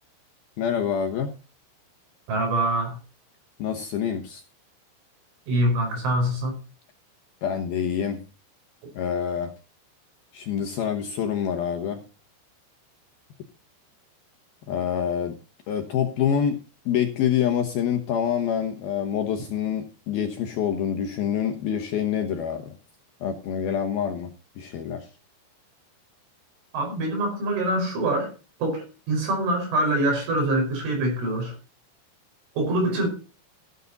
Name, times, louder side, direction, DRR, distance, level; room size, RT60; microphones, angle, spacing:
voice 1, 0.6-1.4 3.6-4.4 7.4-8.2 9.0-9.5 10.3-12.0 14.7-15.4 15.7-16.6 16.9-22.8 23.2-24.3 24.6-25.1, left 8 dB, 70° left, 2.4 m, -26 dB
voice 2, 2.3-3.0 5.5-6.6 26.7-28.3 28.6-31.6 32.6-33.1, right 1 dB, 75° right, 7.2 m, -24 dB
16.0 x 9.5 x 4.0 m
omnidirectional pair, 5.7 m